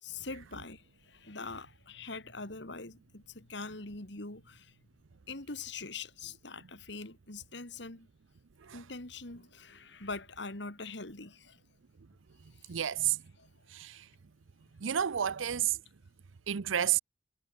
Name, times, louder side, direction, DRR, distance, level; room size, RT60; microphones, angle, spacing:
voice 1, 0.0-4.7 5.3-8.1 8.7-11.6 12.6-12.8 13.4-13.5, left 3 dB, 60° left, 2.7 m, -43 dB
voice 2, 12.7-13.2 13.7-14.0 14.8-15.8 16.5-17.0, right 10 dB, 80° right, 0.6 m, -30 dB
head